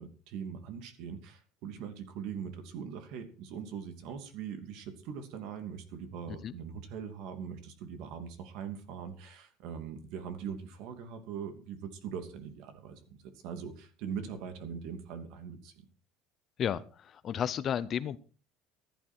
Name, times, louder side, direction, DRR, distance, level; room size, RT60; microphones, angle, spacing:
voice 1, 0.0-15.8, right 7 dB, 60° right, 8 dB, 2.7 m, -41 dB
voice 2, 16.6-18.2, left 9 dB, 35° left, 15 dB, 0.7 m, -33 dB
15.0 x 11.5 x 4.5 m, 0.37 s
cardioid pair, 155°, 0 cm